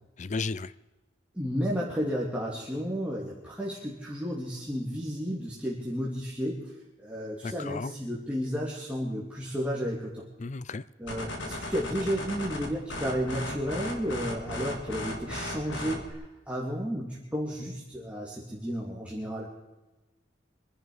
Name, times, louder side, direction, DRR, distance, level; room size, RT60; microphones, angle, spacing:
voice 1, 0.2-0.7 7.4-7.9 10.4-10.8, left 4 dB, 40° left, 0.5 m, -34 dB
voice 2, 1.3-6.6 7.0-10.2 11.0-19.5, equal, 5° right, 2.5 m, -32 dB
sound 1, 11.1-16.1, left 1 dB, 75° left, 2.9 m, -36 dB
25.5 x 11.0 x 4.9 m
head